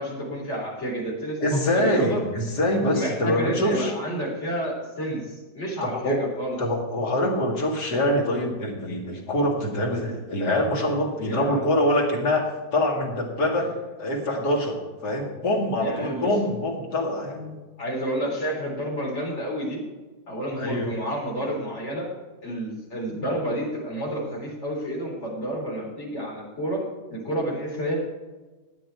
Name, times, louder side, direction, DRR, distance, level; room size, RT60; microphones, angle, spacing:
voice 1, 0.0-1.4 1.7-2.3 2.9-6.6 11.2-11.6 13.6-13.7 15.8-16.3 17.8-19.8 20.3-22.1 22.4-28.0, right 1 dB, 40° left, -3 dB, 4.0 m, -30 dB
voice 2, 1.4-3.9 5.8-6.2 6.6-13.7 14.0-17.6 20.6-20.9, left 1 dB, 70° left, 0 dB, 2.7 m, -25 dB
12.5 x 8.9 x 4.6 m, 1.3 s
omnidirectional pair, 1.8 m